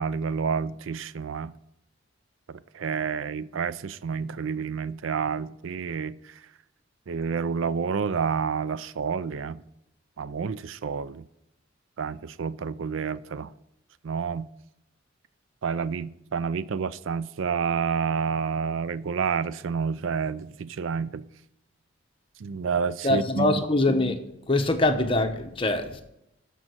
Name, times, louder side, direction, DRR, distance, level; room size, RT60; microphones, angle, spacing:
voice 1, 0.0-1.5 2.5-6.2 7.1-9.6 10.2-11.2 12.0-13.5 14.0-14.5 15.6-21.2 22.4-23.6, right 6 dB, 75° right, 0.4 m, -29 dB
voice 2, 23.0-24.2 24.5-26.0, left 2 dB, 25° left, 1.0 m, -23 dB
13.5 x 5.4 x 6.3 m
head